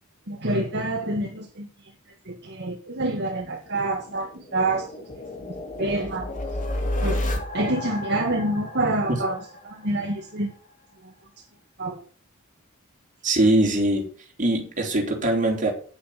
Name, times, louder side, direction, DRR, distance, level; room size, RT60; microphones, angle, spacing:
voice 1, 0.3-1.7 2.3-4.9 5.4-6.3 7.0-7.2 7.5-9.4 9.6-10.5 11.0-11.1 11.8-12.0, right 2 dB, 55° right, 2 dB, 1.9 m, -27 dB
sound 1, 3.6-10.2, left 1 dB, 40° left, 3.2 m, -32 dB
voice 2, 13.2-14.1 14.4-15.7, right 1 dB, 40° right, 1 dB, 4.0 m, -22 dB
10.5 x 8.8 x 7.4 m, 0.41 s
head